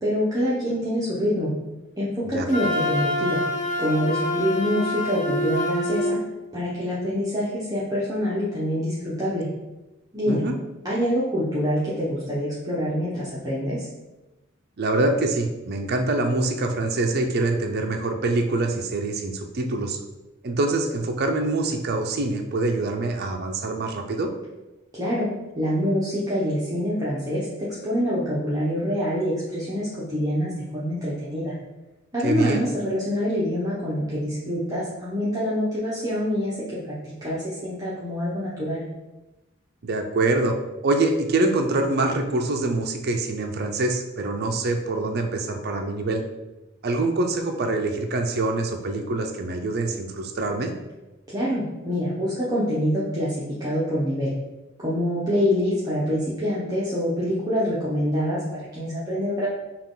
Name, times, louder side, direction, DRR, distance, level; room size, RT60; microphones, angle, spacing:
voice 1, 0.0-1.5 2.0-3.4 3.8-6.2 6.5-9.5 10.1-10.4 10.8-13.9 24.9-25.3 25.5-27.5 27.8-31.5 32.1-36.6 36.8-36.9 37.2-38.8 51.3-53.3 53.6-54.3 54.8-59.5, equal, 20° right, -9 dB, 0.8 m, -25 dB
Wind instrument woodwind instrument, 2.5-6.2, left 1 dB, 40° left, 0.6 m, -26 dB
voice 2, 10.3-10.6 14.8-20.0 20.4-24.3 32.2-32.6 39.8-40.6 40.8-46.2 46.8-50.7, right 2 dB, 55° right, 4 dB, 0.5 m, -25 dB
5.8 x 2.4 x 3.7 m, 1.0 s
head